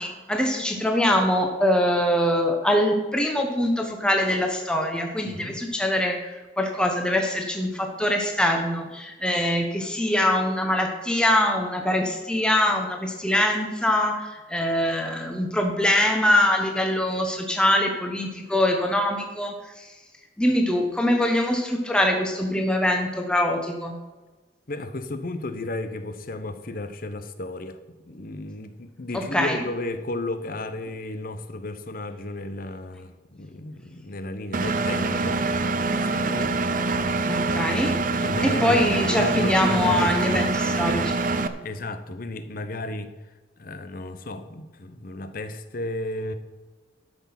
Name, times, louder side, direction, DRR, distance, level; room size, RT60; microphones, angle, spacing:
voice 1, 0.0-19.9 20.4-24.0 29.1-29.6 37.3-37.9 38.4-41.1, left 1 dB, 5° left, 1.0 m, -23 dB
voice 2, 5.3-5.6 24.7-27.8 28.0-35.5 35.8-36.5 38.2-40.6 41.6-43.1 43.6-46.3, left 2 dB, 50° left, 0.9 m, -33 dB
Engine, 34.5-41.5, right 3 dB, 50° right, 0.6 m, -25 dB
13.0 x 6.0 x 5.9 m
head